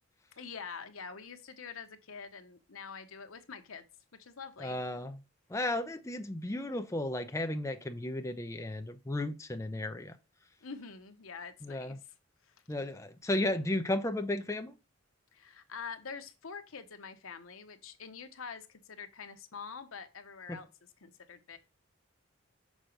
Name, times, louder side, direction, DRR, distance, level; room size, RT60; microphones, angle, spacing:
voice 1, 0.4-3.8 4.2-4.8 10.6-12.0 12.4-13.0 15.3-20.7 21.0-21.6, left 5 dB, 85° left, 0.9 m, -46 dB
voice 2, 4.6-5.2 5.5-10.2 11.6-12.0 12.7-14.7 20.5-20.6, left 1 dB, 15° left, 0.6 m, -34 dB
6.3 x 4.0 x 5.1 m
head